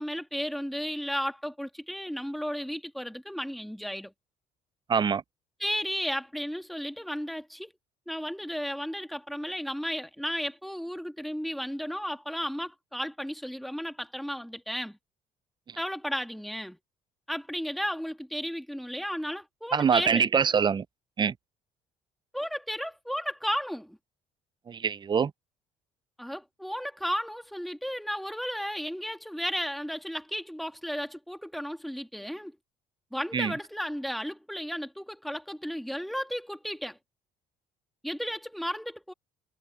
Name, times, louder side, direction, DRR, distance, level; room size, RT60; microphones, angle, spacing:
voice 1, 0.0-4.1 5.6-7.7 8.1-15.0 15.8-16.8 17.3-20.2 22.3-24.0 26.2-32.6 33.1-37.0 38.0-39.1, equal, ahead, 2.0 m, -34 dB
voice 2, 4.9-5.2 19.7-20.8 21.2-21.3 24.7-25.3 33.3-33.5, right 6 dB, 30° right, 0.5 m, -24 dB
cardioid pair, 95°, 16 cm